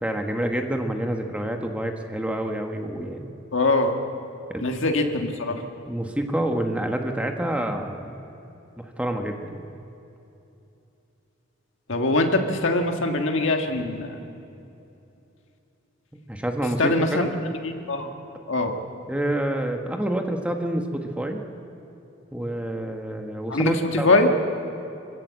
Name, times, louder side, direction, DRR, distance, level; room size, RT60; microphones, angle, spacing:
voice 1, 0.0-3.3 4.5-4.6 5.9-8.1 8.8-9.5 16.1-17.3 19.1-21.4 22.3-24.1, right 1 dB, 5° right, 4 dB, 1.3 m, -28 dB
voice 2, 3.5-3.9 4.6-5.6 11.9-14.2 16.8-17.3 17.6-18.1 18.5-18.7 23.5-24.3, left 2 dB, 65° left, 3 dB, 1.8 m, -22 dB
25.5 x 16.0 x 7.7 m, 2.8 s
head